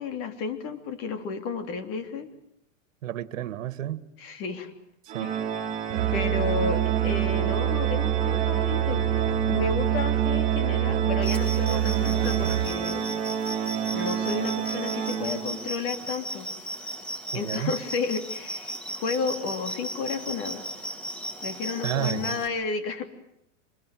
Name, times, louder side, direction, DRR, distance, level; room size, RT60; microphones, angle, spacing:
voice 1, 0.0-2.3 4.2-4.7 5.2-5.6 6.1-9.1 9.5-13.2 13.9-16.5 17.3-20.7 21.4-23.1, left 5 dB, 35° left, 8 dB, 3.1 m, -32 dB
voice 2, 3.0-4.0 5.1-5.3 17.3-17.7 21.8-22.4, right 12 dB, 80° right, 14 dB, 1.9 m, -31 dB
Organ, 5.1-15.8, right 7 dB, 20° right, 4.9 m, -30 dB
Musical instrument, 5.9-12.8, right 13 dB, 45° right, 2.7 m, -26 dB
sound 1, 11.2-22.5, equal, 5° left, 1.9 m, -36 dB
25.0 x 22.0 x 9.3 m, 0.76 s
supercardioid pair, 160°, 39 cm